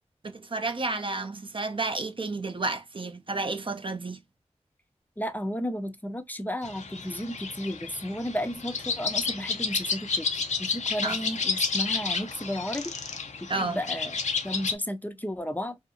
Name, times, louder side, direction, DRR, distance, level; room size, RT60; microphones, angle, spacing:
voice 1, 0.2-4.2 11.0-11.2 13.5-13.8, right 3 dB, 45° right, 0.5 m, -31 dB
voice 2, 5.2-12.9 13.4-14.2 14.4-15.8, equal, 15° left, 0.5 m, -33 dB
sound 1, 6.6-14.7, left 5 dB, 80° left, 0.5 m, -31 dB
2.6 x 2.4 x 2.7 m
cardioid pair, 45°, 12 cm